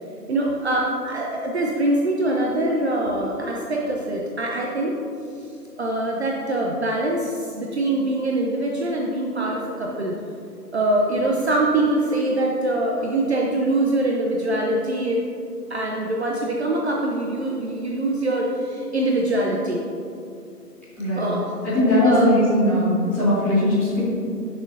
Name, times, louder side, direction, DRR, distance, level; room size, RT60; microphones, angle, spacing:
voice 1, 0.3-4.9 5.8-10.1 10.7-15.2 15.7-19.8 21.2-21.5 22.0-22.3, right 1 dB, 40° right, -1 dB, 0.9 m, -23 dB
voice 2, 21.0-21.3 21.6-24.0, left 1 dB, 5° left, -13 dB, 2.2 m, -19 dB
14.5 x 6.4 x 2.7 m, 2.5 s
figure-of-eight pair, 140°, 48 cm